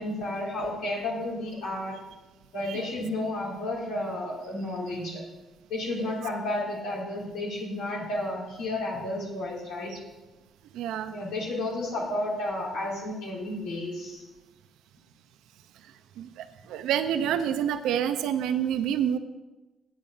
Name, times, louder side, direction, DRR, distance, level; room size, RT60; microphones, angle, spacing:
voice 1, 0.0-2.0 2.5-5.2 5.7-9.9 11.1-14.2, left 1 dB, 90° left, -5 dB, 3.5 m, -32 dB
voice 2, 10.7-11.1 16.2-19.2, right 9 dB, 90° right, 9 dB, 0.6 m, -28 dB
8.8 x 8.3 x 7.6 m, 1.1 s
cardioid pair, 90°, 0 cm